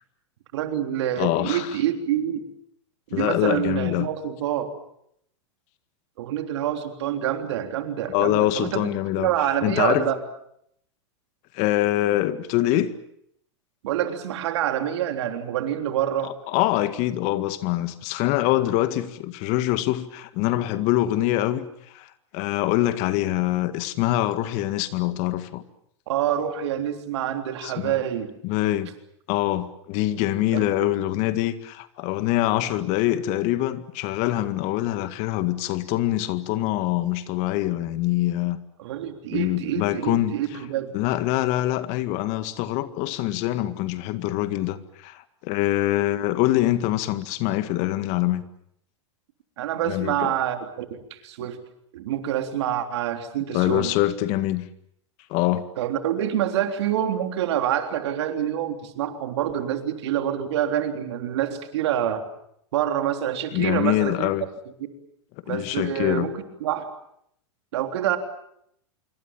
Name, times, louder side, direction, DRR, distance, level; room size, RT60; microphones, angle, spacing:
voice 1, 0.5-2.4 3.1-4.7 6.2-8.8 9.2-10.2 13.8-16.3 26.1-28.3 30.5-30.9 38.8-41.0 49.6-51.6 51.9-53.9 55.8-62.2 62.7-64.3 65.5-66.9 67.7-68.2, right 10 dB, 65° right, 3.5 m, -26 dB
voice 2, 1.2-1.7 3.1-4.1 8.1-9.3 9.6-10.1 11.5-12.9 16.2-25.6 27.6-28.0 28.4-28.9 29.3-38.6 39.3-40.3 40.9-48.4 49.9-50.3 53.5-54.6 55.3-55.6 63.5-64.5 65.5-66.3, left 15 dB, 50° left, 1.9 m, -24 dB
26.5 x 23.5 x 7.4 m
hypercardioid pair, 105°, 15 cm